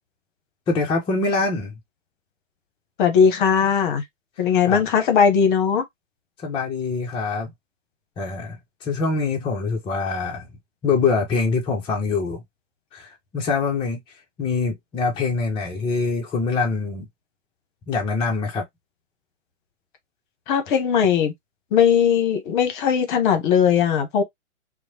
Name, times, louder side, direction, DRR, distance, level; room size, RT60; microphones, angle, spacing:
voice 1, 0.7-1.8 4.7-4.8 6.4-7.5 8.2-10.5 10.8-12.4 12.9-14.0 14.4-17.1 17.9-18.6, left 4 dB, 15° left, 0.6 m, -24 dB
voice 2, 3.0-4.0 4.4-5.8 20.5-21.3 21.7-24.2, left 7 dB, 40° left, 0.9 m, -19 dB
3.0 x 2.1 x 2.7 m
figure-of-eight pair, 115°, 38 cm